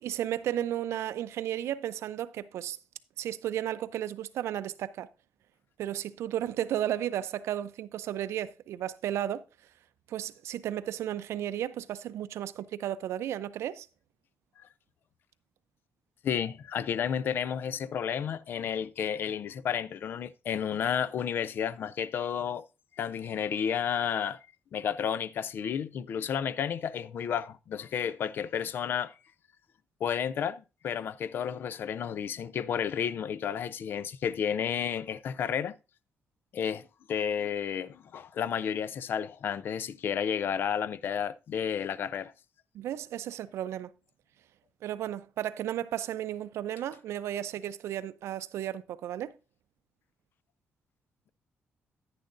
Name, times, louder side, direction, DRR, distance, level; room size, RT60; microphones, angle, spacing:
voice 1, 0.0-2.8 3.2-5.1 5.8-9.4 10.1-13.9 42.7-43.9 44.8-49.3, right 11 dB, 85° right, 0.5 m, -34 dB
voice 2, 16.2-22.6 23.0-24.4 24.7-29.1 30.0-35.7 36.5-42.3, left 8 dB, 50° left, 0.4 m, -32 dB
10.5 x 9.8 x 2.5 m
wide cardioid pair, 175°, 5 cm